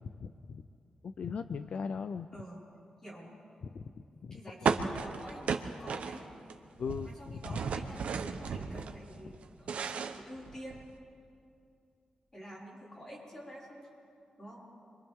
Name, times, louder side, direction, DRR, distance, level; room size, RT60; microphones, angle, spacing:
voice 1, 0.0-0.6 1.0-2.3 3.7-3.8 4.2-4.4 6.8-7.6, left 6 dB, 65° left, 10 dB, 0.5 m, -38 dB
voice 2, 2.3-2.6 3.0-3.3 4.3-6.3 7.0-9.9 10.1-10.8 12.3-13.9 14.4-14.7, equal, 25° left, -6 dB, 5.8 m, -48 dB
sound 1, 4.7-6.5 6.8-8.9 9.3-10.9, right 6 dB, 80° right, 1.0 m, -34 dB
29.5 x 24.0 x 3.7 m, 2.4 s
wide cardioid pair, 125°, 2 cm